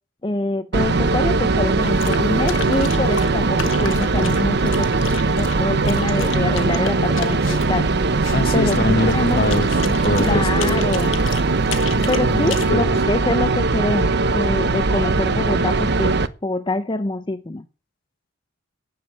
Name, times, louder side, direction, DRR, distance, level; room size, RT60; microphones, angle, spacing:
voice 1, 0.2-4.9 5.4-7.9 8.5-9.4 10.2-11.2 12.1-16.2 16.4-17.6, left 2 dB, 25° left, 0.6 m, -25 dB
sound 1, 0.7-16.3, right 3 dB, 55° right, 0.8 m, -20 dB
sound 2, 1.8-12.7, left 7 dB, 75° left, 1.4 m, -34 dB
voice 2, 8.3-11.0 12.3-12.9, left 1 dB, 45° left, 1.1 m, -23 dB
10.5 x 7.2 x 8.8 m
head